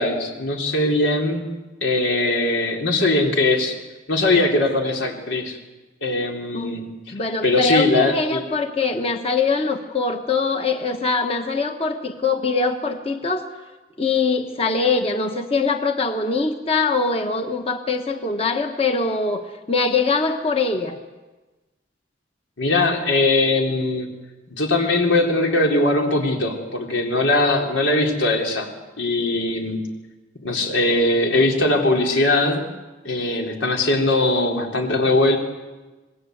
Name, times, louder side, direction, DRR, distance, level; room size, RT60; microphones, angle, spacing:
voice 1, 0.0-1.4 1.8-3.8 4.1-5.6 6.0-6.8 7.4-8.4 22.6-24.1 24.5-28.7 29.0-29.8 30.4-32.7 33.0-35.4, left 2 dB, 90° left, 1 dB, 4.1 m, -20 dB
voice 2, 7.1-13.5 14.0-21.0, left 4 dB, 30° left, 4 dB, 1.3 m, -23 dB
26.5 x 20.0 x 8.1 m, 1.2 s
head